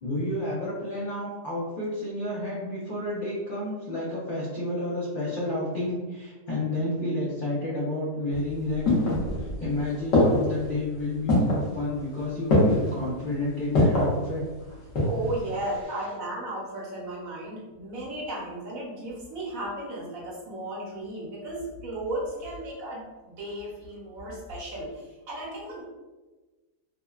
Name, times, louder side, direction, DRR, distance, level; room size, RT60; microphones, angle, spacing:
voice 1, 0.0-14.4, left 1 dB, 90° left, -7 dB, 0.4 m, -30 dB
sound 1, 8.3-9.7 10.1-10.7 11.3-11.7 12.5-12.9 13.7-14.2 14.7-15.3 15.6-15.7, left 1 dB, 55° left, 1.1 m, -22 dB
voice 2, 15.0-25.8, right 1 dB, 65° right, -5 dB, 1.1 m, -35 dB
3.4 x 2.1 x 2.3 m, 1.2 s
omnidirectional pair, 1.7 m